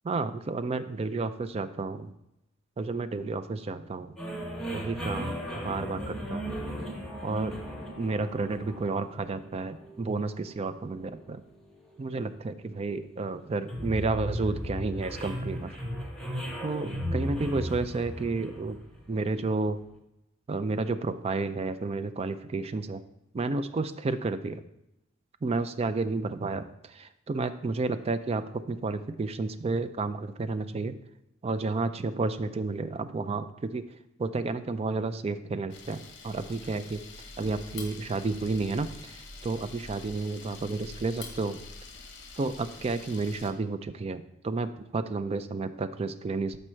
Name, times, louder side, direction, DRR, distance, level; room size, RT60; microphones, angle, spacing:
voice 1, 0.0-2.1 2.8-4.1 4.7-6.6 7.2-7.6 8.0-11.4 12.0-15.8 16.6-18.8 19.1-19.8 20.5-23.0 23.3-24.6 25.4-31.0 31.4-33.9 34.2-37.0 37.4-41.6 42.4-46.6, right 3 dB, 30° right, 10 dB, 0.3 m, -31 dB
sound 1, 4.2-19.6, equal, 5° left, 1.0 m, -37 dB
Camera, 35.7-43.5, left 3 dB, 60° left, 1.0 m, -46 dB
6.1 x 5.4 x 4.4 m, 0.86 s
head